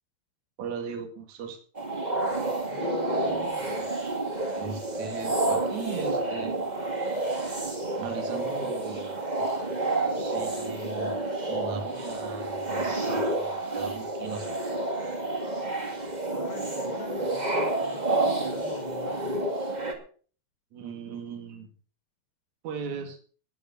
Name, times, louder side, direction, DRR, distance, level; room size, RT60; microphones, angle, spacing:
voice 1, 0.6-1.6 4.6-6.6 8.0-9.5 10.2-11.2 11.5-14.6 20.7-21.7 22.6-23.2, right 6 dB, 50° right, 3.2 m, -38 dB
sound 1, 1.7-19.9, right 2 dB, 25° right, 0.8 m, -29 dB
voice 2, 2.7-3.9 16.3-19.4, left 8 dB, 75° left, 3.3 m, -41 dB
19.5 x 7.2 x 5.5 m
omnidirectional pair, 4.5 m